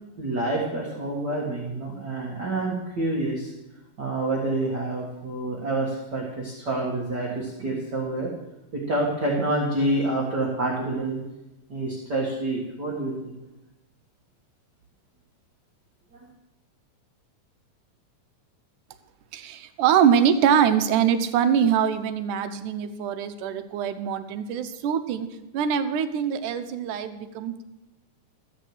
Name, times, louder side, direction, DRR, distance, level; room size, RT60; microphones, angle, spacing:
voice 1, 0.2-3.5 4.0-8.3 8.7-11.2 11.7-13.4 16.1-16.3, right 2 dB, 40° right, -4 dB, 1.8 m, -27 dB
voice 2, 19.3-25.3 25.5-27.6, right 8 dB, 80° right, 9 dB, 2.2 m, -23 dB
13.5 x 6.3 x 7.9 m, 0.98 s
omnidirectional pair, 3.7 m